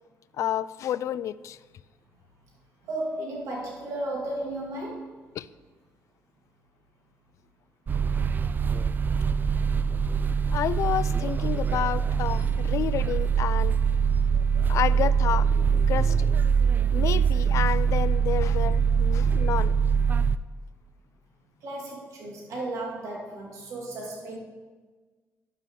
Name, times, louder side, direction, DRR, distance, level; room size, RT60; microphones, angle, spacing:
voice 1, 0.4-1.6 5.4-5.5 10.5-13.8 14.7-15.5 15.9-16.3 16.9-19.7, left 11 dB, 65° left, 17 dB, 0.3 m, -30 dB
voice 2, 2.8-5.1 21.6-24.4, right 1 dB, 70° right, -3 dB, 2.1 m, -34 dB
sound 1, 7.9-20.4, right 6 dB, 35° right, 0.4 m, -23 dB
10.5 x 6.4 x 3.7 m, 1.4 s
supercardioid pair, 70°, 6 cm